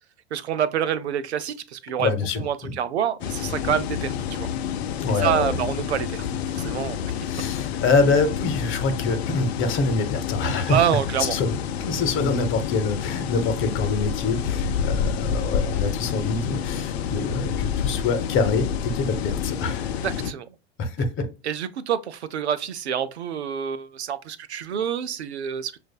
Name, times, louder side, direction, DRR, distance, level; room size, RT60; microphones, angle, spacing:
voice 1, 0.3-2.1 2.4-4.5 5.1-7.0 10.7-11.4 20.0-20.5 21.4-25.8, right 9 dB, 90° right, 0.5 m, -27 dB
voice 2, 2.0-2.7 5.0-5.5 7.2-11.5 11.8-19.9 20.8-21.3, left 3 dB, 40° left, 1.0 m, -25 dB
sound 1, 3.2-20.3, left 8 dB, 75° left, 0.6 m, -28 dB
6.2 x 2.5 x 2.2 m
hypercardioid pair, 95°, 32 cm